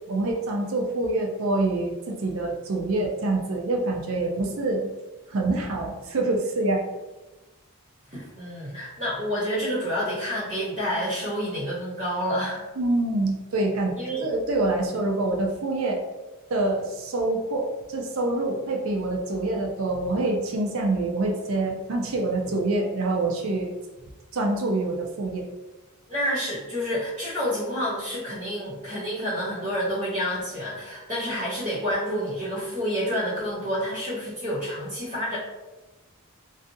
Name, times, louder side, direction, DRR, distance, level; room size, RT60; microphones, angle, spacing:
voice 1, 0.1-4.9 5.3-6.8 12.8-13.9 14.2-16.0 16.5-23.7 24.3-25.5, right 2 dB, 65° right, 1 dB, 0.5 m, -26 dB
voice 2, 8.1-12.6 14.0-14.3 26.1-35.4, equal, 35° right, -8 dB, 0.8 m, -29 dB
2.6 x 2.3 x 2.6 m, 1.1 s
head